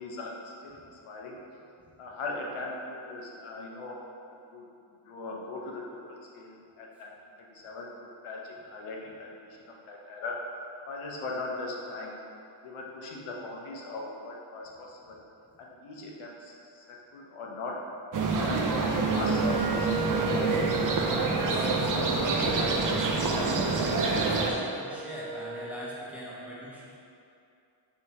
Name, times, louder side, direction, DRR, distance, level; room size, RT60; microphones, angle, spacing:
voice 1, 0.0-1.4 2.0-4.0 4.5-4.7 5.0-7.1 7.5-10.4 10.9-12.2 12.6-15.2 15.6-17.8 18.3-20.6, left 2 dB, 85° left, -2 dB, 0.7 m, -40 dB
sound 1, 18.1-24.5, right 3 dB, 45° right, 0.4 m, -26 dB
Wind instrument woodwind instrument, 19.1-25.8, right 3 dB, 90° right, 0.8 m, -37 dB
voice 2, 22.0-26.9, equal, 5° right, -8 dB, 0.7 m, -41 dB
4.4 x 3.4 x 2.8 m, 2.6 s
wide cardioid pair, 125°, 49 cm